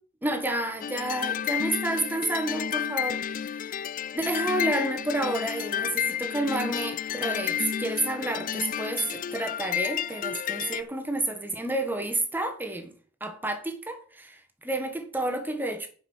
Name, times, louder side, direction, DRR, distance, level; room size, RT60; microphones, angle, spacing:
voice 1, 0.2-3.8 4.1-12.9 13.2-15.9, right 1 dB, 10° right, 1.5 m, -30 dB
sound 1, 0.8-10.8, left 9 dB, 45° left, 0.4 m, -31 dB
10.0 x 5.4 x 6.3 m
head